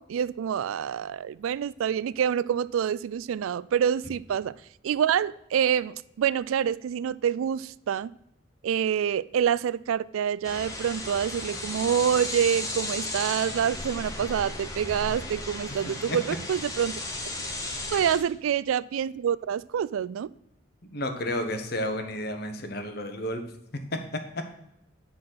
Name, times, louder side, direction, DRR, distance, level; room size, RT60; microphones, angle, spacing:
voice 1, 0.0-4.6 4.8-8.1 8.6-17.0 17.9-20.3, right 8 dB, 85° right, 19 dB, 0.3 m, -27 dB
sound 1, 10.4-18.2, left 2 dB, 15° left, 1.1 m, -35 dB
voice 2, 15.9-16.2 17.9-18.0 20.8-23.4, left 1 dB, 50° left, 6 dB, 1.0 m, -32 dB
10.0 x 4.2 x 5.7 m, 0.84 s
head